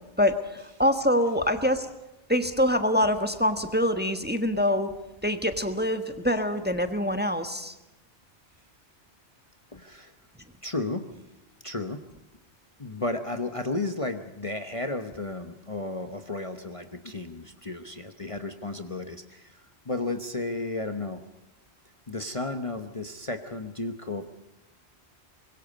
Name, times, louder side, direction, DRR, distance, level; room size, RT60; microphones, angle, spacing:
voice 1, 0.2-1.9 2.3-4.9 5.2-7.8, left 1 dB, 10° right, 8 dB, 1.3 m, -25 dB
voice 2, 9.7-10.1 10.6-11.1 11.6-12.1 12.8-19.6 19.9-21.2 22.1-24.3, left 2 dB, 30° left, 7 dB, 1.1 m, -33 dB
24.5 x 22.0 x 5.3 m, 0.99 s
omnidirectional pair, 1.1 m